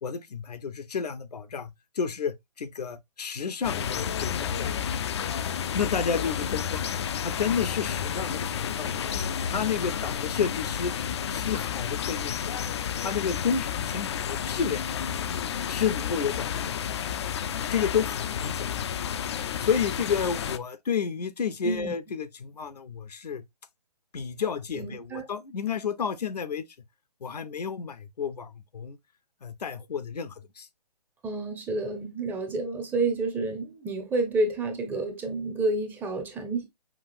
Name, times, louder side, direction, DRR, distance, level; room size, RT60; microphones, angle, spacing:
voice 1, 0.0-4.7 5.7-6.8 7.2-9.1 9.5-10.9 11.3-12.7 13.0-14.9 15.7-16.8 17.7-18.9 19.6-23.4 24.1-26.6 27.2-29.0 29.4-30.7, left 6 dB, 70° left, 0.7 m, -31 dB
sound 1, 3.6-20.6, left 8 dB, 40° left, 0.4 m, -31 dB
voice 2, 24.7-25.3 31.2-36.7, right 2 dB, 10° right, 0.6 m, -29 dB
5.9 x 2.4 x 2.5 m
figure-of-eight pair, 135°, 21 cm